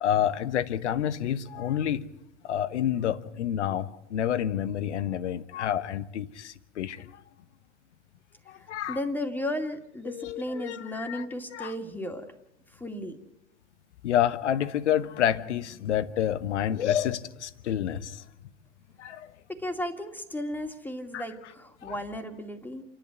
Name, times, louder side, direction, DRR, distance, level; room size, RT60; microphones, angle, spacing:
voice 1, 0.0-2.1 2.4-7.2 8.5-9.0 10.0-11.2 11.5-11.7 14.0-18.2 19.0-19.3 21.1-21.2 21.8-22.0, left 10 dB, 65° left, 16 dB, 1.2 m, -29 dB
voice 2, 8.6-12.2 12.7-13.2 19.5-22.8, left 1 dB, 5° left, 5 dB, 2.3 m, -34 dB
29.0 x 11.5 x 9.4 m, 0.84 s
figure-of-eight pair, 80°, 37 cm